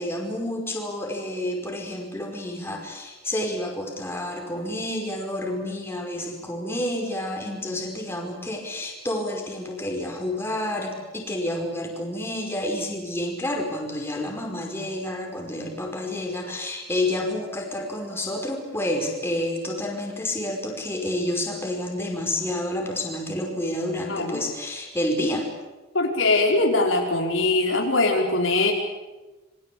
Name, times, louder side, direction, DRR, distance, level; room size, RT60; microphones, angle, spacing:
voice 1, 0.0-25.5, left 1 dB, 10° left, 1 dB, 5.2 m, -29 dB
voice 2, 24.1-24.4 25.9-28.7, left 2 dB, 85° left, 1 dB, 5.2 m, -21 dB
27.0 x 23.0 x 8.7 m, 1.1 s
head